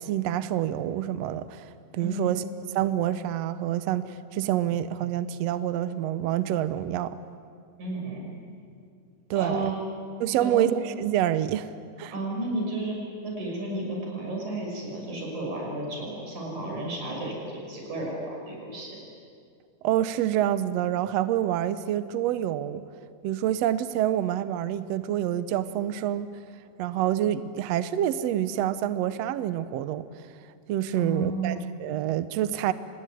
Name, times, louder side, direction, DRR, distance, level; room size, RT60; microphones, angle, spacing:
voice 1, 0.0-1.7 1.9-2.5 2.7-7.2 9.3-9.7 10.2-11.7 12.0-12.1 19.8-22.8 23.2-26.3 26.8-30.0 30.7-32.7, right 11 dB, 80° right, 13 dB, 1.5 m, -27 dB
voice 2, 2.0-2.3 7.8-8.3 9.3-9.8 10.4-10.7 12.1-13.0 13.2-19.0 31.0-31.6, right 2 dB, 55° right, -1 dB, 7.3 m, -32 dB
26.0 x 20.5 x 9.3 m, 2.3 s
omnidirectional pair, 3.9 m